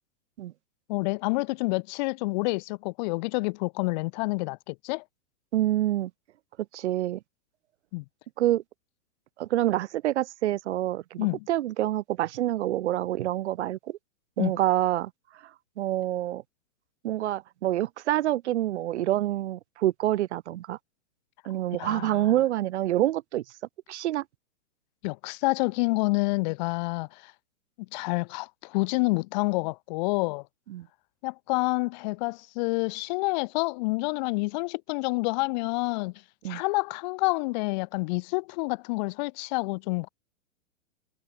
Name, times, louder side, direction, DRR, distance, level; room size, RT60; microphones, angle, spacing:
voice 1, 0.9-5.0 7.9-8.0 11.2-11.5 14.4-14.5 21.8-22.3 25.0-27.3 27.9-30.4 31.2-36.1 36.5-40.1, left 26 dB, 35° left, 0.7 m, -28 dB
voice 2, 5.5-6.1 6.7-7.2 8.4-8.6 9.4-14.0 14.4-15.1 15.8-16.4 17.0-20.8 21.4-23.4 23.9-24.2 30.7-30.9 36.4-36.6, right 14 dB, 65° right, 1.5 m, -27 dB
hypercardioid pair, 135°, 37 cm